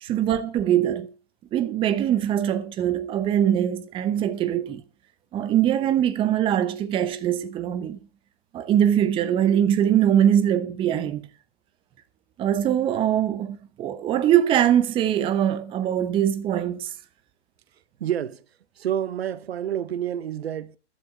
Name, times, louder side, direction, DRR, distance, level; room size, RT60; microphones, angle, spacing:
voice 1, 0.0-1.1 1.5-4.8 5.3-8.0 8.5-11.3 12.4-16.9, right 10 dB, 15° right, 0.9 m, -22 dB
voice 2, 18.0-18.4 18.8-20.8, right 10 dB, 60° right, 1.0 m, -28 dB
14.5 x 11.5 x 4.0 m
hypercardioid pair, 130°, 35 cm